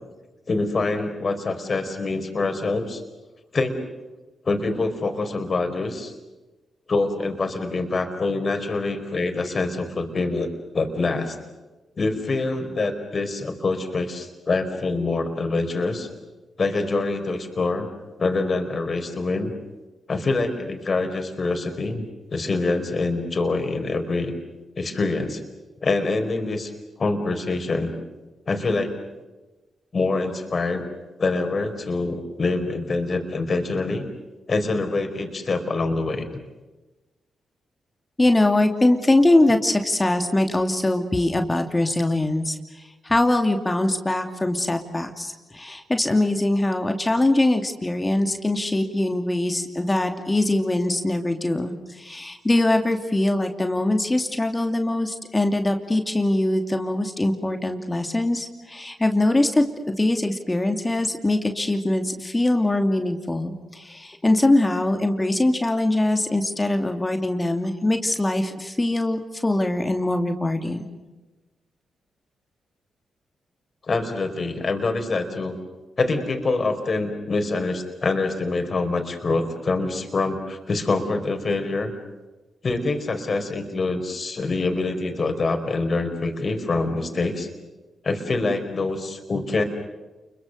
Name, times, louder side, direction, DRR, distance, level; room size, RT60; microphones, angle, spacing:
voice 1, 0.5-3.0 3.5-3.8 4.4-6.1 6.9-11.4 12.0-16.1 16.6-17.9 18.2-19.5 20.1-22.0 22.3-24.3 24.8-25.4 25.8-26.7 27.0-27.9 28.5-28.9 29.9-30.8 31.2-34.0 34.5-36.3 73.9-75.5 76.0-81.9 82.6-87.5 88.0-89.6, left 3 dB, 50° left, 6 dB, 4.5 m, -25 dB
voice 2, 38.2-59.6 60.0-70.9, left 1 dB, 20° left, 5 dB, 2.7 m, -22 dB
29.5 x 23.0 x 6.8 m, 1.1 s
supercardioid pair, 45°, 0 cm